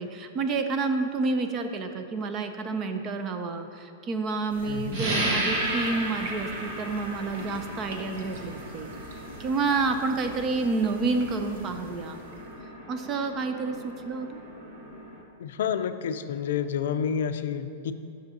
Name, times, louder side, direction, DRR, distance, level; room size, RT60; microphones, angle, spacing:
voice 1, 0.0-8.9 9.4-12.2 12.9-14.4, right 3 dB, 20° right, 7 dB, 0.4 m, -29 dB
sound 1, 4.5-12.6, right 1 dB, 60° right, 1.1 m, -44 dB
voice 2, 4.7-5.0 15.4-17.9, left 8 dB, 65° left, 10 dB, 0.4 m, -29 dB
sound 2, 4.9-15.2, right 1 dB, 40° right, 1.2 m, -35 dB
10.5 x 6.0 x 2.8 m, 2.6 s
supercardioid pair, 170°, 0 cm